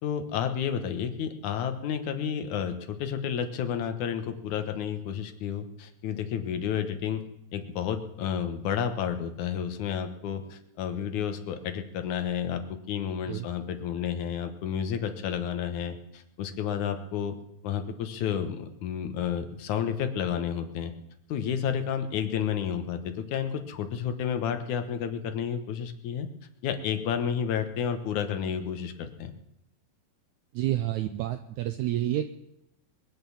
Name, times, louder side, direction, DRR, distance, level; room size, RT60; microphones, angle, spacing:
voice 1, 0.0-7.2 7.5-17.4 17.6-20.9 21.3-26.3 26.6-29.3, left 8 dB, 65° left, 8 dB, 2.4 m, -31 dB
voice 2, 30.5-32.2, right 13 dB, 80° right, 9 dB, 1.7 m, -29 dB
22.5 x 7.7 x 7.1 m, 0.81 s
omnidirectional pair, 4.0 m